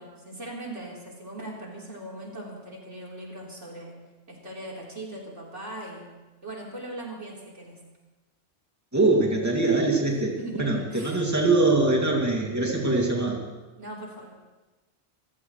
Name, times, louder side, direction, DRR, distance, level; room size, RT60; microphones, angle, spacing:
voice 1, 0.0-3.9 4.3-6.1 6.4-7.8 10.4-11.2 13.8-14.3, right 1 dB, 85° right, -4 dB, 4.3 m, -39 dB
voice 2, 8.9-13.4, right 2 dB, 15° right, -2 dB, 2.5 m, -23 dB
28.0 x 15.0 x 3.2 m, 1.2 s
omnidirectional pair, 1.2 m